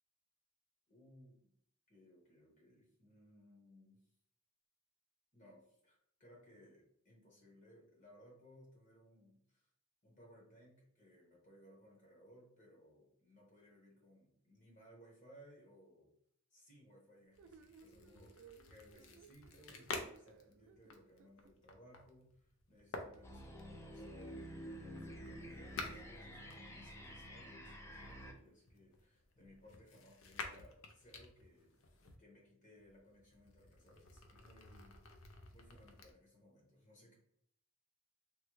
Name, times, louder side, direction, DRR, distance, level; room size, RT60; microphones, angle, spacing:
voice 1, 0.9-1.5 1.9-4.0 5.3-9.7 10.0-16.1 16.5-18.4 18.7-31.8 32.2-35.3 35.5-37.1, equal, 40° left, -2 dB, 1.2 m, -63 dB
sound 1, 17.3-27.3 28.0-32.1 32.8-36.1, left 3 dB, 85° left, 0.5 m, -51 dB
sound 2, 17.4-21.5, right 5 dB, 65° right, 0.3 m, -62 dB
sound 3, 23.2-28.3, equal, 15° left, 0.4 m, -50 dB
3.3 x 2.1 x 3.0 m, 0.67 s
head